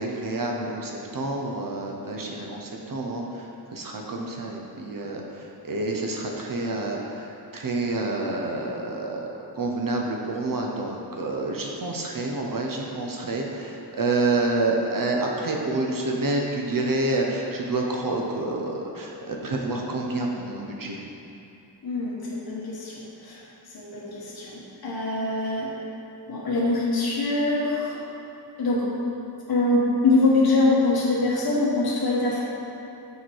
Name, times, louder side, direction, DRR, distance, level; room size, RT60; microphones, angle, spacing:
voice 1, 0.0-3.5 3.7-5.2 5.6-21.0, right 2 dB, 50° right, 0 dB, 0.7 m, -28 dB
voice 2, 21.8-23.4 23.7-25.7 26.3-28.0 28.6-29.0 29.5-32.4, left 2 dB, 60° left, -6 dB, 1.2 m, -24 dB
6.5 x 4.7 x 4.5 m, 3.0 s
wide cardioid pair, 145°, 41 cm